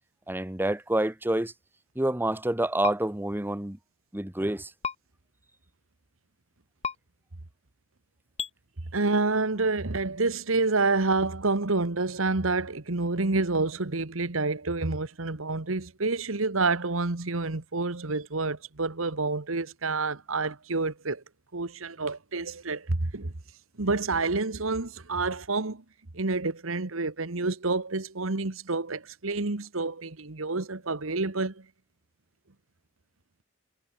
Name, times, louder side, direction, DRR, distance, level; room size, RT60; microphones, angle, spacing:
voice 1, 0.3-1.5 1.9-3.8 4.1-4.7, right 1 dB, 10° right, 1.1 m, -28 dB
sound 1, 2.8-3.0 4.8-5.0 6.8-6.9 8.4-8.5, left 6 dB, 30° left, 1.2 m, -31 dB
voice 2, 8.9-21.2 21.5-23.3 23.8-25.8 26.1-31.6, right 3 dB, 80° right, 1.5 m, -28 dB
head